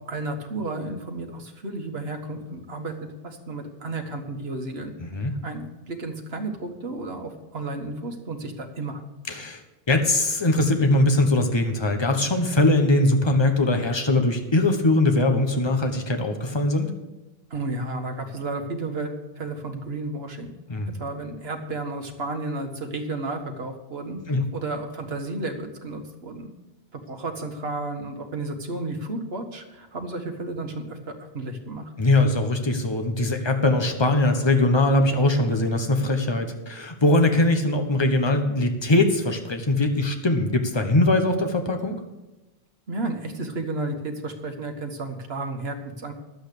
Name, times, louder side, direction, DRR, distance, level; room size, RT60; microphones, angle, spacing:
voice 1, 0.1-4.9 5.4-9.0 17.5-19.1 19.4-20.5 20.9-26.5 26.9-31.9 42.9-46.1, right 2 dB, 75° right, 4 dB, 1.6 m, -32 dB
voice 2, 5.0-5.3 9.3-9.6 9.9-16.9 20.7-20.9 24.3-24.4 32.0-42.0, left 2 dB, 25° left, 5 dB, 1.1 m, -21 dB
11.5 x 8.0 x 6.7 m, 1.0 s
omnidirectional pair, 1.0 m